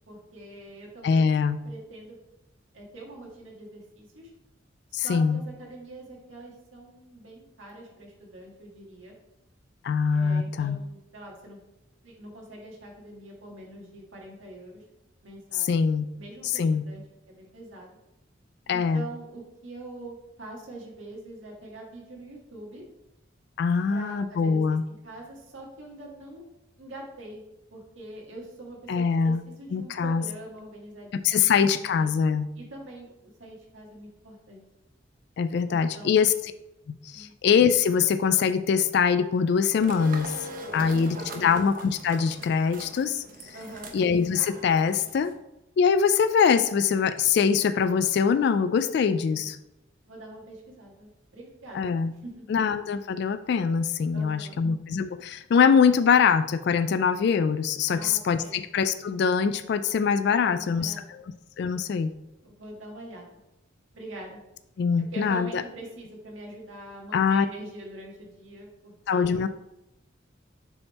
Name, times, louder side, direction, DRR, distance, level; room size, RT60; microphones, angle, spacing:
voice 1, 0.1-1.3 1.6-2.2 2.7-4.3 4.9-9.1 10.1-11.6 12.0-14.8 15.2-15.7 16.1-18.0 18.7-22.8 23.9-26.4 26.8-27.4 27.7-32.1 32.5-34.6 35.7-36.3 37.1-37.3 40.7-41.6 43.5-43.9 49.3-49.5 50.0-52.5 54.1-54.6 57.9-58.6 60.4-61.0 62.4-63.4 63.9-64.4 65.0-69.4, right 1 dB, 80° right, -1 dB, 1.6 m, -44 dB
voice 2, 1.0-1.6 4.9-5.4 9.8-10.8 15.7-16.1 16.5-16.8 18.7-19.0 23.6-24.8 28.9-29.4 29.7-30.2 31.1-32.5 35.4-36.3 36.9-40.3 40.7-43.5 43.9-45.3 45.8-49.6 51.7-52.1 52.5-61.2 61.6-62.1 64.8-65.5 67.1-67.5 69.1-69.5, left 6 dB, 60° left, 11 dB, 0.3 m, -23 dB
sound 1, 39.8-45.3, right 1 dB, 45° right, 0.8 m, -41 dB
7.1 x 3.5 x 4.1 m, 0.91 s
head